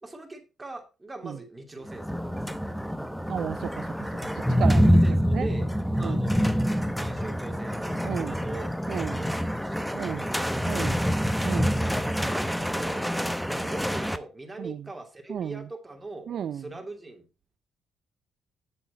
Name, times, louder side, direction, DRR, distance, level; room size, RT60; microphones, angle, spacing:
voice 1, 0.0-2.8 4.7-5.7 6.0-6.7 7.0-8.6 9.2-11.7 12.0-13.1 13.5-17.3, right 2 dB, 15° right, 2.7 m, -42 dB
sound 1, 1.9-14.2, equal, ahead, 0.8 m, -26 dB
voice 2, 3.3-5.5 6.0-6.2 8.0-8.4 8.9-9.2 9.9-10.3 10.7-11.0 11.4-11.8 14.6-14.9 15.3-15.6 16.3-16.6, right 8 dB, 65° right, 0.4 m, -34 dB
8.2 x 7.6 x 4.1 m
cardioid pair, 90°, 0 cm